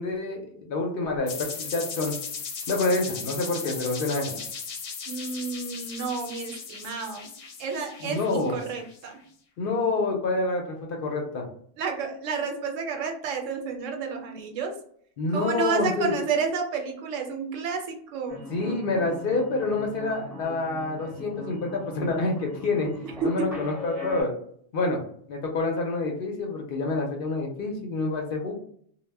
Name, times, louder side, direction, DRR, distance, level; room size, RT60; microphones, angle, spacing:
voice 1, 0.0-2.2 2.7-4.4 8.0-8.6 9.6-11.4 15.2-16.2 18.5-22.9 23.2-24.3 24.7-25.0 25.3-28.5, left 3 dB, 60° left, 1 dB, 0.6 m, -27 dB
sound 1, 1.3-9.0, left 5 dB, 85° left, 0.9 m, -37 dB
voice 2, 5.1-7.3 7.6-9.2 11.8-14.8 15.3-18.4 23.2-23.5, right 5 dB, 85° right, 3 dB, 0.9 m, -30 dB
sound 2, 18.3-24.2, left 1 dB, 5° right, 0.6 m, -40 dB
2.1 x 2.0 x 3.3 m, 0.62 s
omnidirectional pair, 1.3 m